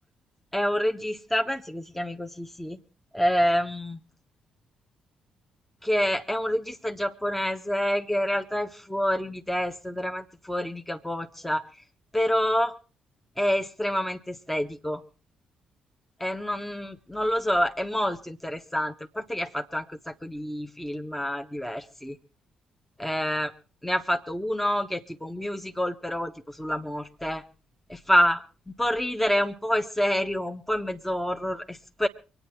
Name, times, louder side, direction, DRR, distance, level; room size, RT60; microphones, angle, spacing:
voice 1, 0.5-2.8 3.1-4.0 5.8-11.8 12.1-12.8 13.4-15.0 16.2-22.2 23.0-23.5 23.8-27.4 27.9-32.1, equal, 5° left, 5 dB, 1.3 m, -27 dB
25.0 x 9.6 x 4.5 m, 0.36 s
figure-of-eight pair, 40°, 3 cm